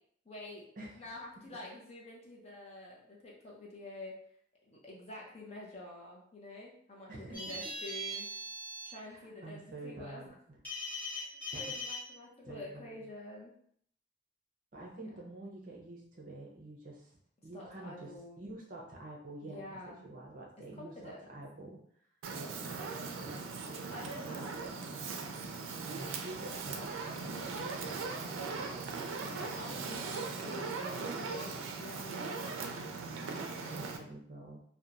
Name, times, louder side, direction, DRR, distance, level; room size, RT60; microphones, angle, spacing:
voice 1, 0.2-0.7 1.0-4.2 4.7-8.3 8.9-10.3 11.1-13.5 17.5-18.4 19.4-20.0 20.8-21.3 23.7-24.5 25.9-26.0 27.3-28.3 29.2-32.5 33.2-33.9, left 1 dB, 30° left, -4 dB, 0.6 m, -48 dB
voice 2, 0.8-1.1 1.5-1.6 7.1-7.6 9.0-10.6 11.5-11.8 12.4-13.0 14.7-17.2 17.4-21.8 22.3-23.5 24.3-24.8 25.8-28.0 29.2-30.2 33.6-34.6, right 2 dB, 45° right, -2 dB, 0.6 m, -48 dB
sound 1, 7.3-8.9 10.6-12.0, left 1 dB, 10° left, 0.9 m, -40 dB
Fire, 22.2-34.0, right 4 dB, 85° right, 0.4 m, -39 dB
2.9 x 2.2 x 2.5 m, 0.65 s
head